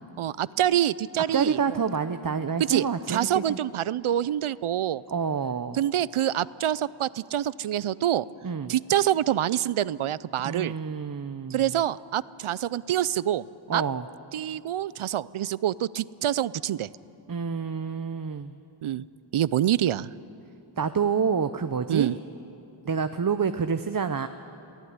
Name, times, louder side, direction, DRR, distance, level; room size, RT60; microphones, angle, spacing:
voice 1, 0.2-1.8 2.6-5.0 5.7-8.3 8.7-10.8 11.5-13.4 13.7-13.8 14.3-16.9 18.8-19.0 19.3-20.1 21.9-22.2, right 11 dB, 80° right, 20 dB, 0.5 m, -26 dB
voice 2, 1.3-3.4 5.1-5.8 8.4-8.7 10.4-11.7 13.7-14.0 17.3-18.5 20.8-22.1 22.9-24.3, right 6 dB, 45° right, 10 dB, 0.7 m, -28 dB
23.0 x 14.5 x 9.5 m, 2.9 s
wide cardioid pair, 50°, 49 cm